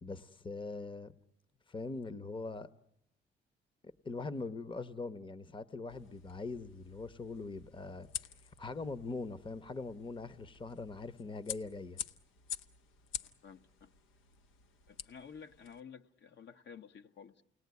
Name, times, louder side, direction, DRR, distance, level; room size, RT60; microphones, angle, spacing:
voice 1, 0.0-1.1 1.7-2.7 4.0-8.1 8.6-12.0, left 3 dB, 25° left, 14 dB, 0.9 m, -42 dB
sound 1, 5.9-15.8, left 10 dB, 85° left, 1.0 m, -48 dB
voice 2, 13.2-13.9 14.9-17.4, left 6 dB, 60° left, 7 dB, 1.1 m, -52 dB
29.0 x 19.5 x 9.5 m, 0.86 s
cardioid pair, 90°, 20 cm